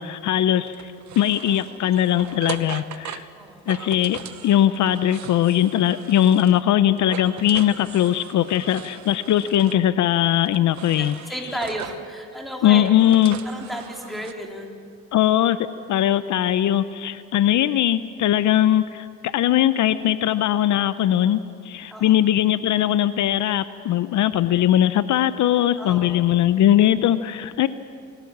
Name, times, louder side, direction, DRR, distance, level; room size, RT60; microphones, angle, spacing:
voice 1, 0.0-3.3 3.7-11.2 12.6-13.4 15.1-15.6 15.9-27.7, left 11 dB, 75° left, 14 dB, 0.7 m, -20 dB
sound 1, 0.7-6.7 7.0-9.8 10.4-12.1 12.6-14.3, right 10 dB, 70° right, 1.0 m, -39 dB
voice 2, 3.3-3.7 11.0-12.9 13.4-14.8 21.9-22.2 25.8-26.3, equal, ahead, 0 dB, 3.7 m, -33 dB
25.5 x 16.5 x 7.3 m, 2.2 s
cardioid pair, 90°, 30 cm